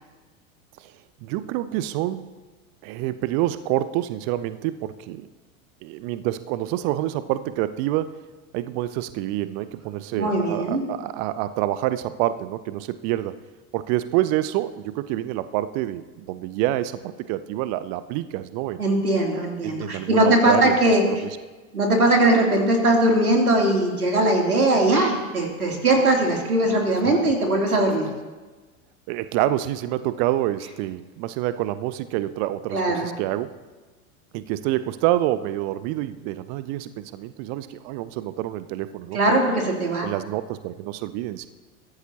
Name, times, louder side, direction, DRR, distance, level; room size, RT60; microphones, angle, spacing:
voice 1, 1.2-2.3 2.8-5.3 5.8-8.2 8.5-13.4 13.7-18.8 19.6-20.7 21.1-21.3 27.1-27.2 29.1-33.6 34.3-39.4 40.0-41.5, right 14 dB, 25° right, 14 dB, 0.3 m, -27 dB
voice 2, 10.1-10.8 18.8-21.0 21.7-28.1 32.7-33.1 39.1-40.1, right 1 dB, 80° right, 0 dB, 3.1 m, -20 dB
22.0 x 15.5 x 2.9 m, 1.3 s
figure-of-eight pair, 85°, 43 cm